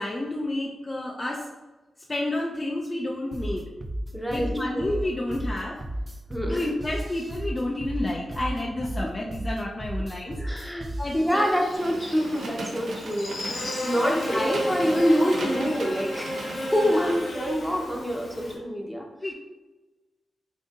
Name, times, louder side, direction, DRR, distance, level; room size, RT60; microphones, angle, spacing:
voice 1, 0.0-1.5 2.1-3.7 4.3-5.8 6.5-10.7 11.0-11.6 13.7-14.4 16.9-17.1 19.2-19.3, left 1 dB, 30° left, -2 dB, 0.5 m, -30 dB
sound 1, 3.3-11.3, right 1 dB, 30° right, 0.4 m, -33 dB
voice 2, 4.1-4.9 6.3-6.6 9.0-9.1 10.4-13.3 13.8-19.1, equal, ahead, -1 dB, 0.8 m, -26 dB
Buzz, 11.3-18.6, equal, 80° left, 1.1 m, -33 dB
sound 2, 11.7-17.2, right 2 dB, 80° right, 0.7 m, -38 dB
5.3 x 2.7 x 2.4 m, 1.1 s
cardioid pair, 70°, 0 cm